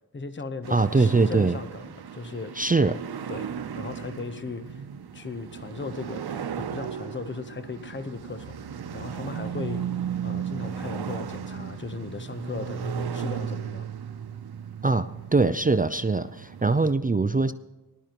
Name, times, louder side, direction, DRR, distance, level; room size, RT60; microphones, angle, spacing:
voice 1, 0.1-2.6 3.3-4.8 5.1-8.6 8.9-13.9, left 4 dB, 30° left, 11 dB, 0.9 m, -37 dB
sound 1, 0.6-16.9, right 7 dB, 90° right, 0.8 m, -35 dB
voice 2, 0.7-1.6 2.6-3.0 14.8-17.5, right 3 dB, 25° right, 12 dB, 0.5 m, -22 dB
19.5 x 12.5 x 3.0 m, 1.1 s
cardioid pair, 55°, 37 cm